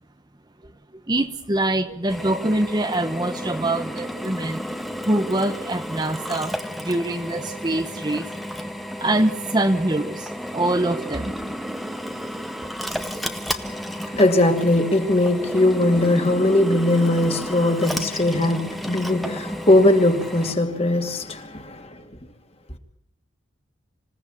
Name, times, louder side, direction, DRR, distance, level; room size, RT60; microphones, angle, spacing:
voice 1, 1.1-4.6 5.0-6.5 6.8-8.3 9.0-11.3, right 1 dB, 20° right, 1.0 m, -24 dB
Drill, 2.1-20.5, equal, ahead, 1.2 m, -32 dB
voice 2, 13.9-22.0, left 1 dB, 30° left, 2.4 m, -20 dB
26.5 x 16.5 x 8.5 m
head